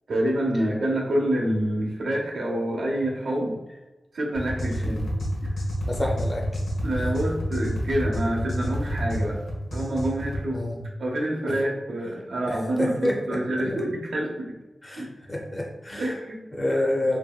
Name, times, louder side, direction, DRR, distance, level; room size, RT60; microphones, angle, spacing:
voice 1, 0.1-3.5 4.1-5.1 5.4-5.6 6.8-9.4 9.7-10.6 11.0-14.5 15.0-15.1 16.0-16.4 16.7-16.8, right 1 dB, 90° right, -2 dB, 0.6 m, -27 dB
sound 1, 4.3-10.4, equal, 85° left, 0.7 m, -29 dB
voice 2, 5.9-6.4 10.5-10.9 12.5-13.6 14.8-16.1 16.5-17.2, left 1 dB, 20° left, -1 dB, 0.4 m, -28 dB
2.9 x 2.7 x 2.2 m, 1.1 s
wide cardioid pair, 150°, 0 cm